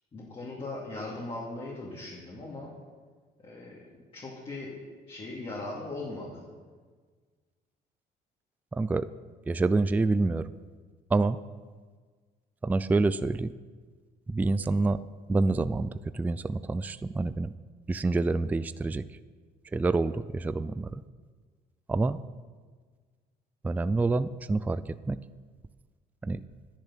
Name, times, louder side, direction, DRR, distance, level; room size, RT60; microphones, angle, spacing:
voice 1, 0.1-2.7 3.4-3.8 4.1-4.7 5.1-6.4, left 2 dB, 35° left, -5 dB, 2.6 m, -39 dB
voice 2, 8.7-9.1 9.5-10.5 11.1-11.4 12.6-13.5 14.3-15.0 15.3-17.5 17.9-19.0 19.7-21.0 21.9-22.2 23.6-25.2 26.2-26.4, right 3 dB, 10° right, 14 dB, 0.3 m, -27 dB
10.5 x 10.5 x 5.9 m, 1.5 s
cardioid pair, 110°, 17 cm